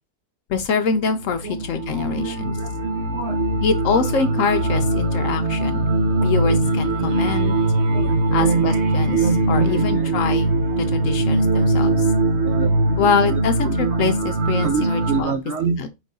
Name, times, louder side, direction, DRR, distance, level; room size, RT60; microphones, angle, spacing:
voice 1, 0.5-2.6 3.6-5.9 6.2-7.5 8.3-12.1 13.0-15.3 15.8-15.9, left 6 dB, 65° left, 0.9 m, -24 dB
sound 1, 1.1-15.2, right 2 dB, 55° right, 0.9 m, -21 dB
voice 2, 1.9-3.4 7.9-8.6 9.2-10.1 11.8-11.9 12.4-13.0 13.3-13.4 14.6-15.8, right 5 dB, 70° right, 0.6 m, -26 dB
5.2 x 2.6 x 3.7 m
omnidirectional pair, 1.7 m